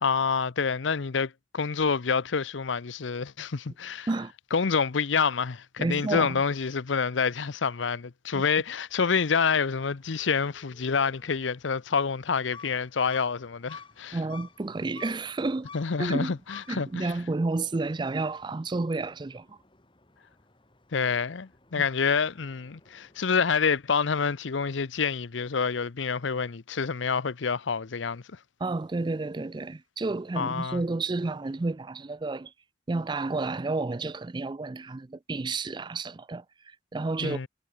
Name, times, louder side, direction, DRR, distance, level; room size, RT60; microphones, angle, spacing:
voice 1, 0.0-4.1 4.5-14.2 15.7-17.1 20.9-28.2 30.4-30.8 37.2-37.5, left 5 dB, 80° left, 0.7 m, -27 dB
voice 2, 5.8-6.4 8.3-8.4 14.1-15.7 16.0-16.3 16.7-19.6 21.8-21.9 28.6-32.5 32.9-37.4, right 3 dB, 25° right, 0.4 m, -31 dB
sound 1, 9.7-23.8, left 5 dB, 25° left, 3.9 m, -53 dB
head